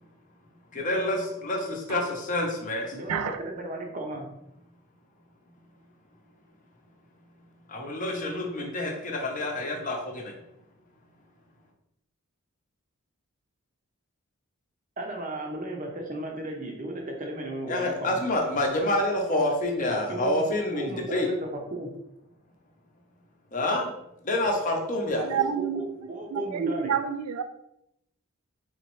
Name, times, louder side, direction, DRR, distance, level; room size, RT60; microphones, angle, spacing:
voice 1, 0.7-2.9 7.7-10.4 17.7-21.3 23.5-23.9 24.2-25.4, left 1 dB, 35° left, 0.6 m, -28 dB
voice 2, 2.9-4.3 15.0-18.2 19.9-20.4 20.7-21.9 25.3-26.9, right 1 dB, 35° right, 0.6 m, -35 dB
voice 3, 25.2-25.9 26.3-27.4, right 7 dB, 90° right, 0.4 m, -29 dB
4.0 x 3.0 x 3.0 m
head